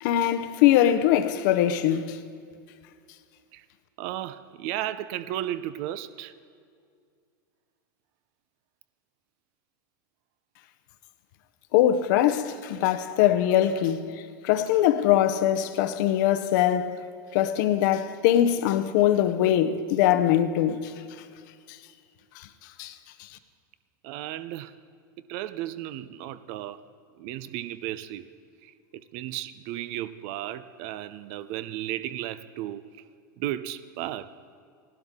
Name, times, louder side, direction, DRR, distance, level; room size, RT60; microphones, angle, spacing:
voice 1, 0.0-2.2 11.7-17.0 17.3-20.9 22.4-22.5 22.8-22.9 23.2-23.3, left 11 dB, 65° left, 0.7 m, -22 dB
voice 2, 4.0-6.3 24.0-24.7 25.2-26.8 27.2-28.3 28.6-32.8 33.4-34.3, right 13 dB, 60° right, 0.6 m, -34 dB
18.0 x 12.0 x 3.7 m
hypercardioid pair, 110°, 11 cm